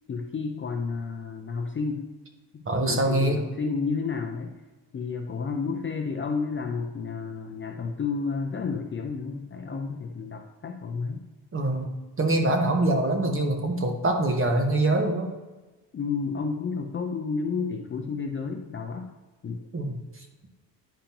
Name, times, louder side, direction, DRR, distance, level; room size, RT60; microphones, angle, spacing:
voice 1, 0.1-2.1 2.5-4.5 4.9-11.2 15.9-19.1 19.4-19.7, left 5 dB, 25° left, 3 dB, 0.6 m, -31 dB
voice 2, 2.7-3.4 11.5-11.9 12.2-15.3 19.7-19.9, right 2 dB, 25° right, 4 dB, 1.3 m, -24 dB
10.5 x 5.0 x 2.9 m, 1.2 s
cardioid pair, 100°, 46 cm